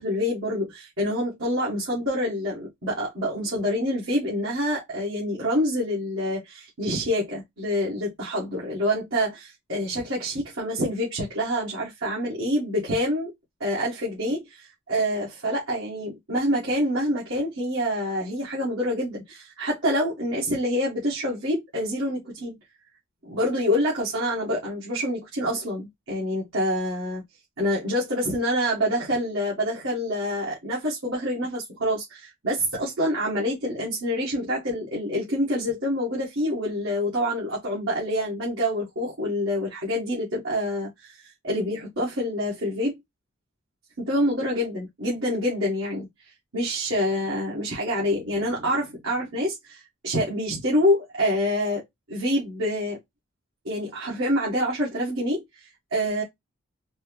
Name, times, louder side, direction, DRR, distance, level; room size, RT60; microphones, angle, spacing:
voice 1, 0.0-13.3 13.6-22.6 23.2-27.2 27.6-43.0 44.0-46.1 46.5-51.8 52.1-53.0 53.7-55.6 55.9-56.2, equal, 70° right, 1.7 m, -26 dB
4.4 x 2.0 x 2.9 m
head